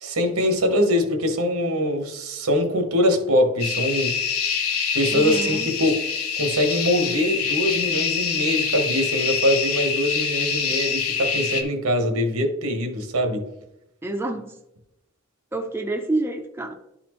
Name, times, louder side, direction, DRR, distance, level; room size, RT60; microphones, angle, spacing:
voice 1, 0.0-4.2 4.9-6.0 6.4-13.4, left 1 dB, 85° right, 5 dB, 1.2 m, -23 dB
sound 1, 3.6-11.6, left 6 dB, 80° left, 0.9 m, -25 dB
voice 2, 5.1-5.7 14.0-14.6 15.5-16.7, right 2 dB, 10° right, 4 dB, 0.4 m, -28 dB
11.0 x 4.2 x 3.0 m, 0.87 s
head